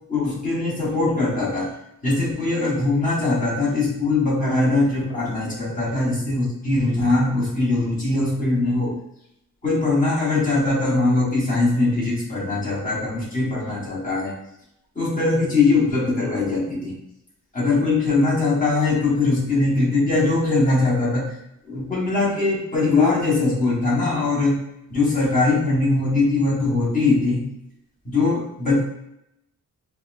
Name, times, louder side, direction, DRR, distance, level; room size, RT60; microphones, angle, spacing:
voice 1, 0.1-1.7 2.0-8.9 9.6-14.3 15.0-16.9 17.5-21.3 21.7-24.6 24.9-27.4 28.1-28.8, left 3 dB, 25° left, -6 dB, 1.2 m, -21 dB
5.1 x 2.2 x 2.5 m, 0.82 s
wide cardioid pair, 155°, 33 cm